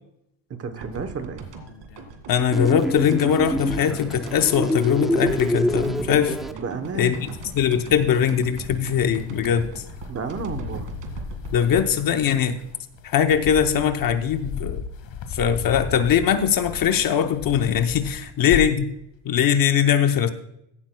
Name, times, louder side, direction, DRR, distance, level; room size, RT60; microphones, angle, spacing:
voice 1, 0.5-1.4 6.5-7.3 10.1-10.9, right 5 dB, 30° right, 8 dB, 0.9 m, -31 dB
Mountain Climber or Skydiver Opening Parachute. Foley Sound, 0.7-2.9 3.2-4.8 5.1-6.2 6.7-18.9, left 6 dB, 60° left, 1.6 m, -37 dB
sound 1, 0.8-13.6, right 5 dB, 60° right, 2.1 m, -39 dB
voice 2, 2.3-6.4 6.9-7.3 7.6-9.7 11.5-12.6 13.0-14.8 15.3-18.9 19.2-20.3, left 8 dB, 45° left, 8 dB, 0.8 m, -21 dB
sound 2, 2.5-6.5, equal, ahead, 0.4 m, -26 dB
15.5 x 11.5 x 2.2 m, 0.80 s
cardioid pair, 170°, 48 cm